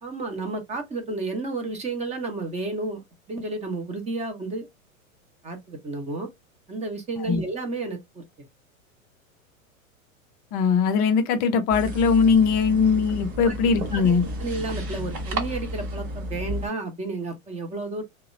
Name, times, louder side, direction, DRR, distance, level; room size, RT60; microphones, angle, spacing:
voice 1, 0.0-4.7 5.4-6.3 6.7-8.5 13.4-13.5 13.9-14.1 14.4-18.0, right 3 dB, 15° right, 0.7 m, -32 dB
voice 2, 10.5-14.2, left 5 dB, 25° left, 0.4 m, -20 dB
sound 1, 11.7-16.7, equal, 35° right, 1.1 m, -32 dB
2.8 x 2.1 x 2.5 m
hypercardioid pair, 105°, 42 cm